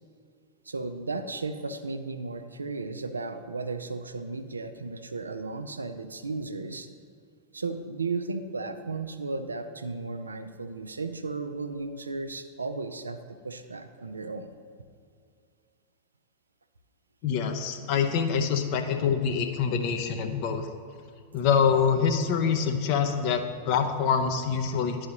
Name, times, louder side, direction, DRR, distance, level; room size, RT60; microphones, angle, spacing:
voice 1, 0.7-6.9 7.5-13.2 13.4-14.5 23.1-23.2, right 3 dB, 75° right, 8 dB, 0.4 m, -35 dB
voice 2, 17.2-20.7 21.3-25.1, left 6 dB, 45° left, 5 dB, 0.7 m, -25 dB
11.5 x 4.8 x 2.9 m, 2.3 s
figure-of-eight pair, 90°, 0 cm